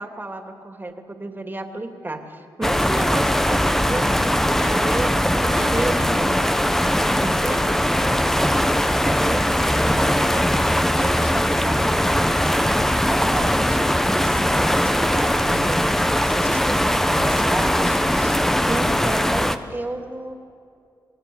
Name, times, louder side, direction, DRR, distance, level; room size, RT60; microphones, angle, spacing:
voice 1, 0.0-6.5 7.2-8.5 9.0-12.8 13.0-18.4 18.6-20.3, right 2 dB, 25° right, 4 dB, 2.8 m, -32 dB
sound 1, 2.6-19.6, equal, 5° left, 1.2 m, -20 dB
29.0 x 20.0 x 7.2 m, 2.4 s
cardioid pair, 65°, 8 cm